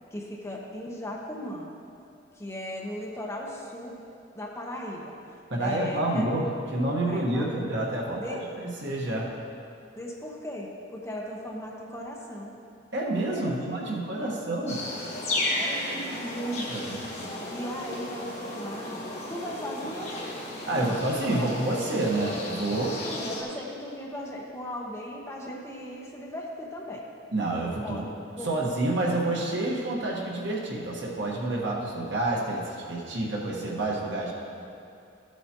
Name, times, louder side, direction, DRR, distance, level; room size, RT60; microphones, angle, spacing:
voice 1, 0.1-1.7 2.3-4.0 4.3-5.2 5.6-6.3 7.0-7.7 8.2-8.4 10.0-12.5 13.3-14.4 15.6-16.6 17.5-19.0 19.3-20.2 20.7-21.0 21.3-21.5 23.0-27.1 27.8-28.5, left 1 dB, 15° left, -2 dB, 0.9 m, -37 dB
voice 2, 5.5-6.4 6.7-9.3 12.9-14.8 16.1-17.0 20.7-22.9 27.3-28.0 28.4-32.6 32.9-34.3, right 2 dB, 70° right, -3 dB, 1.4 m, -28 dB
sound 1, 14.7-23.4, left 1 dB, 35° left, 1.5 m, -34 dB
14.0 x 8.0 x 3.0 m, 2.6 s
head